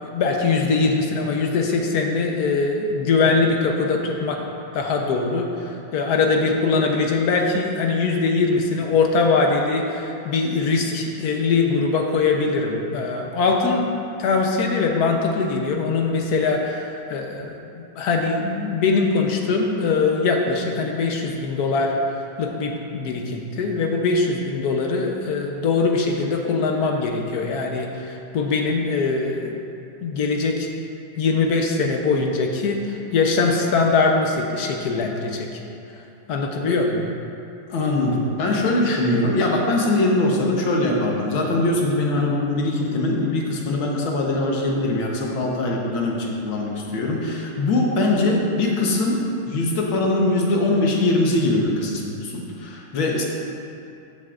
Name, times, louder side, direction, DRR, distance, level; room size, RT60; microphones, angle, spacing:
voice 1, 0.0-4.4 4.7-29.6 30.0-30.7 31.2-35.5 36.3-37.1, left 4 dB, 60° left, 2 dB, 1.2 m, -22 dB
voice 2, 37.7-49.2 49.5-53.2, left 2 dB, 85° left, -1 dB, 1.9 m, -22 dB
14.0 x 7.8 x 2.5 m, 2.6 s
omnidirectional pair, 2.2 m